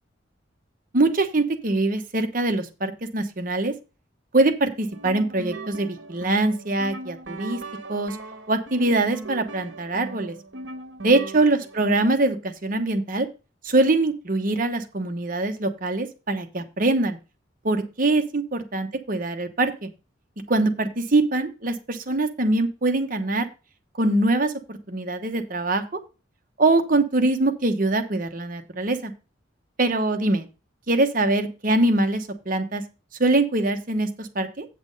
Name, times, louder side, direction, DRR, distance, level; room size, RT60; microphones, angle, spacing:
voice 1, 0.9-3.7 4.3-7.6 7.9-8.2 8.5-10.3 11.0-13.3 13.6-17.2 17.6-19.9 20.5-23.5 24.0-26.0 26.6-29.1 29.8-30.5 30.9-32.8 33.2-34.7, right 2 dB, 45° right, 7 dB, 1.0 m, -23 dB
sound 1, 4.8-12.3, right 2 dB, 65° right, 1.3 m, -38 dB
8.4 x 6.1 x 5.2 m, 0.32 s
head